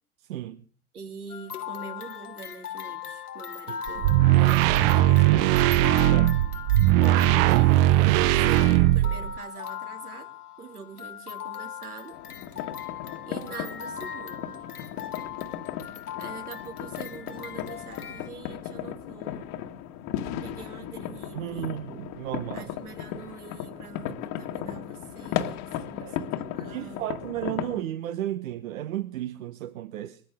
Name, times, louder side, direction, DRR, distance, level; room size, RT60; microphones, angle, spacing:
voice 1, 0.3-0.6 3.9-4.0 6.1-6.3 21.3-22.7 26.0-26.2 26.6-30.2, right 13 dB, 60° right, 1.2 m, -34 dB
voice 2, 0.9-5.3 7.2-10.3 10.6-12.2 13.2-14.5 16.2-19.6 20.4-21.8 22.5-27.1, right 5 dB, 80° right, 3.2 m, -44 dB
sound 1, 1.3-18.3, left 9 dB, 85° left, 1.4 m, -39 dB
sound 2, 3.9-9.4, right 15 dB, 40° right, 0.6 m, -19 dB
sound 3, 12.1-27.8, left 10 dB, 45° left, 1.8 m, -36 dB
21.0 x 14.0 x 3.6 m
figure-of-eight pair, 90°, 44 cm